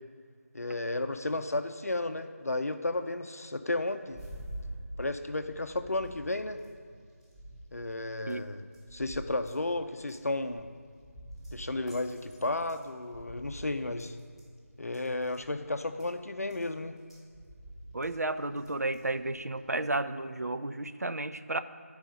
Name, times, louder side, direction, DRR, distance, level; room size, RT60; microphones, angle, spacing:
voice 1, 0.5-4.2 5.0-6.6 7.7-10.7 11.5-14.2 14.8-17.0, left 2 dB, 70° left, 8 dB, 0.6 m, -33 dB
sound 1, 4.1-19.9, right 1 dB, ahead, 0.8 m, -48 dB
voice 2, 17.9-21.6, right 2 dB, 80° right, 10 dB, 0.6 m, -32 dB
12.5 x 4.8 x 5.2 m, 2.1 s
figure-of-eight pair, 165°, 8 cm